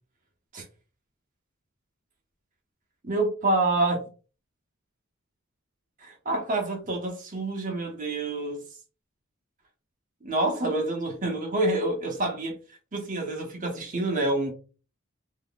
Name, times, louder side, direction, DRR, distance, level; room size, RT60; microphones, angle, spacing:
voice 1, 3.0-4.0 6.0-8.6 10.2-12.6 12.9-14.5, right 2 dB, 40° right, 1.0 m, -27 dB
3.8 x 3.0 x 2.3 m
head